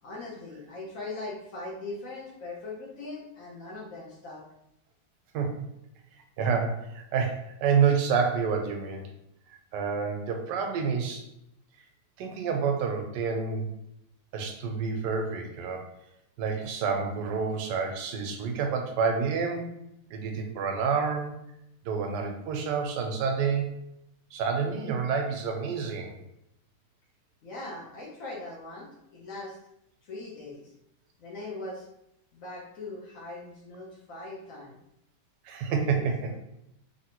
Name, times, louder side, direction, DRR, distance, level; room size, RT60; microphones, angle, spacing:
voice 1, 0.0-4.4 27.4-29.6 30.0-30.7 31.2-31.9 32.3-34.8 35.7-36.3, left 2 dB, 60° left, -3 dB, 1.0 m, -40 dB
voice 2, 6.4-9.1 9.5-11.2 12.2-13.7 14.3-15.8 16.4-19.7 20.1-21.3 21.8-23.7 24.3-26.2 35.4-36.3, right 6 dB, 85° right, 4 dB, 1.2 m, -28 dB
3.2 x 2.7 x 2.8 m, 0.80 s
omnidirectional pair, 1.8 m